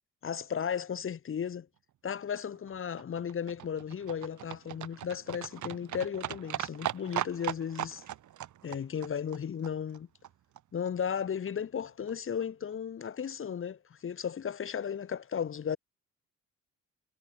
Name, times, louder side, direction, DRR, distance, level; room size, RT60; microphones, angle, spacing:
voice 1, 0.2-1.7 2.0-8.0 8.6-10.1 10.7-15.8, left 7 dB, 45° left, 1.3 m, -35 dB
Livestock farm animals working animals, 2.4-10.6 10.9-11.0 11.2-11.3 11.5-11.6 11.8-11.9 12.1-12.2 12.4-12.5 12.7-12.8 13.1-13.2, right 12 dB, 75° right, 4.9 m, -39 dB
cardioid pair, 90°, 30 cm